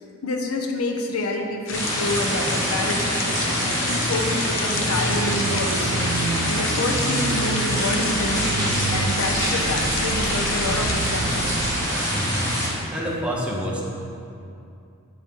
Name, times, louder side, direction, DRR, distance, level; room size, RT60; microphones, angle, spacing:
voice 1, 0.2-5.9 6.4-11.6, left 2 dB, 85° left, 3 dB, 0.9 m, -28 dB
sound 1, 1.7-10.9, left 5 dB, 55° left, 0.7 m, -32 dB
sound 2, 1.7-12.7, equal, 15° left, 2.2 m, -25 dB
sound 3, 4.9-11.9, right 5 dB, 75° right, 0.3 m, -30 dB
voice 2, 12.1-12.4 12.9-13.8, equal, 5° right, -4 dB, 1.0 m, -27 dB
8.7 x 8.4 x 3.7 m, 2.6 s
head